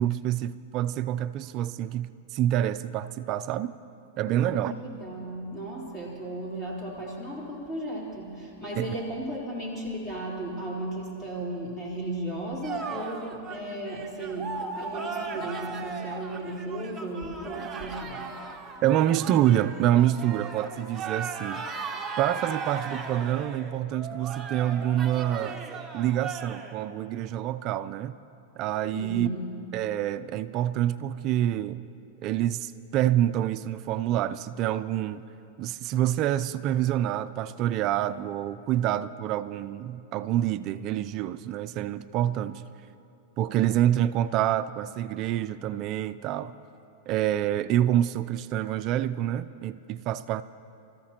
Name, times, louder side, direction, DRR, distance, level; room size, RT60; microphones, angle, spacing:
voice 1, 0.0-3.7 4.2-4.7 8.8-8.9 18.8-21.7 22.2-25.6 25.9-28.2 28.6-29.3 29.7-31.8 32.2-35.2 35.6-42.6 43.4-46.5 47.1-50.4, right 12 dB, 40° right, 0.4 m, -27 dB
voice 2, 4.3-18.4 28.9-29.5, right 1 dB, 20° left, 3.7 m, -35 dB
sound 1, 12.6-26.8, right 5 dB, 15° right, 1.1 m, -37 dB
26.5 x 14.0 x 2.9 m
hypercardioid pair, 130°, 0 cm